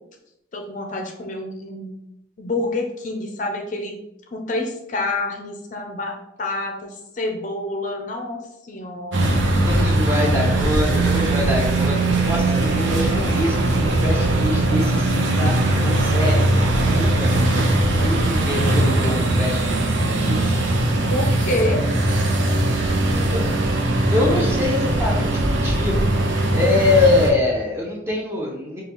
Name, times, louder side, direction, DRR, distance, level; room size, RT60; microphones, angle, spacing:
voice 1, 0.5-2.0 2.4-4.0 4.3-9.3 21.1-21.8, left 2 dB, 40° left, 2 dB, 0.4 m, -28 dB
sound 1, 9.1-27.3, right 2 dB, 75° right, 0.6 m, -20 dB
voice 2, 9.2-20.5 23.3-23.5 24.1-26.0 26.5-28.8, left 2 dB, 15° right, -3 dB, 0.8 m, -24 dB
4.9 x 2.3 x 3.0 m, 0.85 s
head